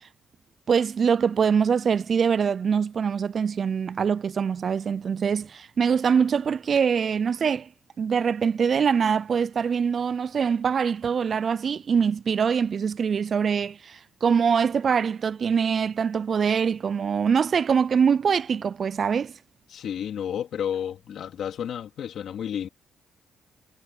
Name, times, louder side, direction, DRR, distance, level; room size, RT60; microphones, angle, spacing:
voice 1, 0.7-7.7 8.0-19.3, right 6 dB, 50° right, 0.3 m, -23 dB
voice 2, 19.7-22.7, left 9 dB, 65° left, 2.9 m, -31 dB
cardioid pair, 90°, 0 cm